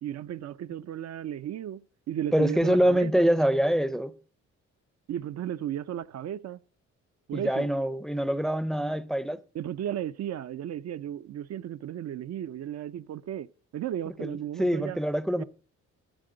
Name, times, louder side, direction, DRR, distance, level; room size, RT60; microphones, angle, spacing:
voice 1, 0.0-1.8 2.1-3.3 5.1-6.6 7.3-7.7 9.5-13.5 13.7-15.0 15.4-15.5, right 11 dB, 60° right, 0.6 m, -34 dB
voice 2, 2.3-4.2 7.3-9.4 14.2-15.4, equal, ahead, 0.6 m, -25 dB
12.5 x 8.4 x 3.8 m
cardioid pair, 90°, 30 cm